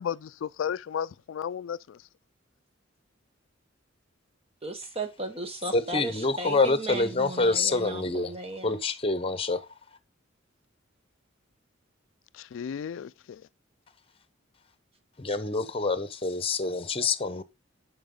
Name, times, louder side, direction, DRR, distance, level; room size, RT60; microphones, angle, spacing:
voice 1, 0.0-2.0 12.3-13.4, left 8 dB, 70° left, 0.3 m, -34 dB
voice 2, 4.6-8.8, right 2 dB, 30° right, 1.0 m, -35 dB
voice 3, 5.7-8.4 8.6-9.7 15.2-17.4, left 3 dB, 30° left, 0.9 m, -26 dB
9.1 x 5.7 x 3.8 m
head